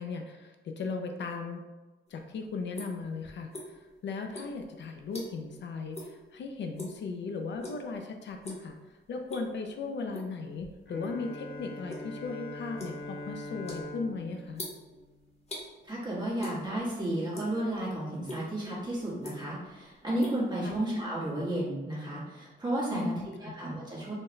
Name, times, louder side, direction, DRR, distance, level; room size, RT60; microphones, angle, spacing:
voice 1, 0.0-1.6 2.1-8.8 9.1-14.6 20.6-20.8 22.9-23.5, left 4 dB, 65° left, 4 dB, 0.4 m, -37 dB
sound 1, 2.1-4.0 4.3-5.6 5.9-6.2 6.5-7.1 7.6-8.0 8.3-8.7 9.1-9.7 10.1-11.2 11.6-15.7 16.4-16.9 17.2-17.8 18.3-18.4 19.0-19.7 19.9-21.1, left 1 dB, 30° left, 0.9 m, -43 dB
Bowed string instrument, 10.9-15.7, left 2 dB, 80° left, 1.0 m, -43 dB
voice 2, 15.9-23.1 23.4-24.1, right 1 dB, 20° right, -7 dB, 1.4 m, -32 dB
4.4 x 2.2 x 3.1 m, 1.2 s
wide cardioid pair, 115°, 20 cm